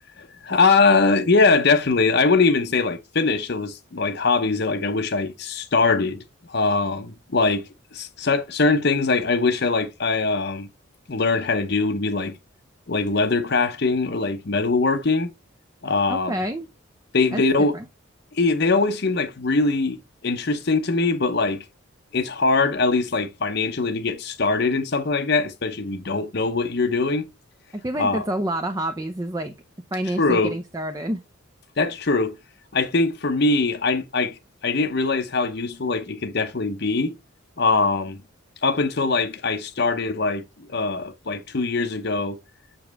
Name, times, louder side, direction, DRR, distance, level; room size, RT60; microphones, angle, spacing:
voice 1, 0.4-10.7 11.1-12.4 12.9-15.3 15.8-16.4 17.1-17.7 18.3-21.6 22.1-27.3 28.0-28.2 30.2-30.5 31.8-32.3 32.7-37.1 37.6-38.2 38.6-42.4, left 3 dB, 50° left, 0.7 m, -22 dB
voice 2, 16.1-16.7 17.3-17.4 17.7-17.9 27.8-29.5 29.9-31.2, right 1 dB, 15° right, 0.5 m, -28 dB
7.1 x 5.2 x 3.4 m
head